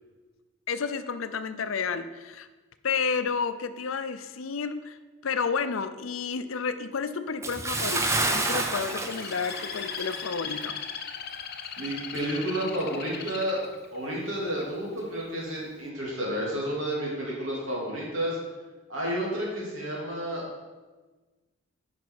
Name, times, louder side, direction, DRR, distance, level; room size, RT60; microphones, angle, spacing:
voice 1, 0.7-2.5 2.8-5.0 5.2-10.8, left 5 dB, 85° left, 11 dB, 0.6 m, -31 dB
Bathtub (filling or washing) / Splash splatter, 7.4-10.3 10.6-10.8 11.3-11.4, right 2 dB, 15° right, 0.7 m, -29 dB
Bird, 8.6-14.6 15.2-15.6, left 7 dB, 55° left, 0.7 m, -38 dB
voice 2, 11.8-13.6 13.9-18.4 18.9-20.4, right 1 dB, 75° right, -4 dB, 2.8 m, -31 dB
9.3 x 6.1 x 4.7 m, 1.2 s
head